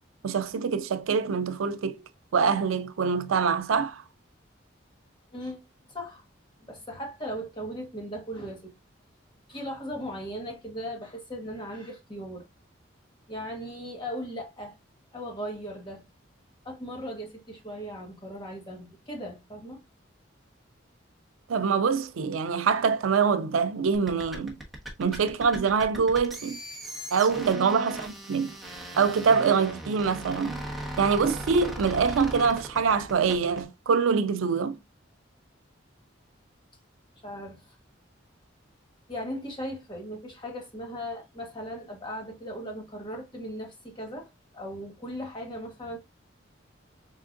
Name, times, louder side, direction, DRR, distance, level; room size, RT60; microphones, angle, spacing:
voice 1, 0.2-2.0 2.3-4.0 21.5-24.6 25.0-26.6 27.1-28.5 29.0-30.6 31.0-34.7, right 5 dB, 90° right, 0.4 m, -24 dB
voice 2, 5.3-5.6 5.9-6.2 6.7-8.7 9.5-12.5 13.3-14.8 15.1-16.0 16.6-19.8 27.3-27.6 37.2-37.6 39.1-44.3 44.5-46.0, equal, 25° left, 1.2 m, -37 dB
sound 1, 23.9-33.6, right 1 dB, ahead, 1.1 m, -38 dB
4.3 x 3.6 x 2.5 m
head